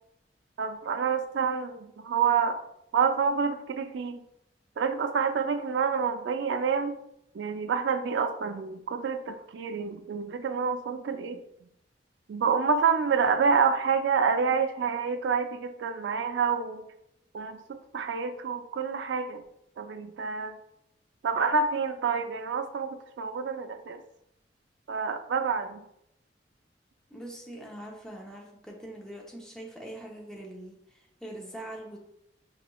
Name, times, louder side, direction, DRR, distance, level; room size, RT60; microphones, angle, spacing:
voice 1, 0.6-2.6 2.9-4.2 4.8-7.0 7.3-11.4 12.3-16.8 17.3-19.4 19.8-20.6 21.2-24.0 24.9-25.8, right 5 dB, 75° right, 7 dB, 0.3 m, -28 dB
voice 2, 27.1-32.0, right 1 dB, 5° left, -2 dB, 0.7 m, -43 dB
4.8 x 3.1 x 2.2 m, 0.77 s
head